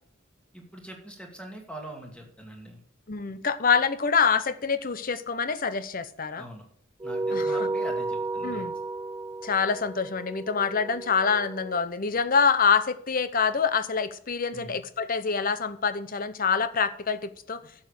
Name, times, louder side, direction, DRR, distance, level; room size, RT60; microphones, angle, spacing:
voice 1, 0.5-2.8 6.4-6.6 7.0-8.6 14.5-14.8, right 1 dB, 5° left, 2 dB, 2.2 m, -43 dB
voice 2, 3.1-6.5 7.3-7.7 8.4-8.7 9.4-17.6, left 5 dB, 45° left, 13 dB, 0.8 m, -26 dB
sound 1, 7.0-11.8, right 2 dB, 20° right, 0.4 m, -32 dB
11.5 x 7.3 x 6.5 m, 0.64 s
head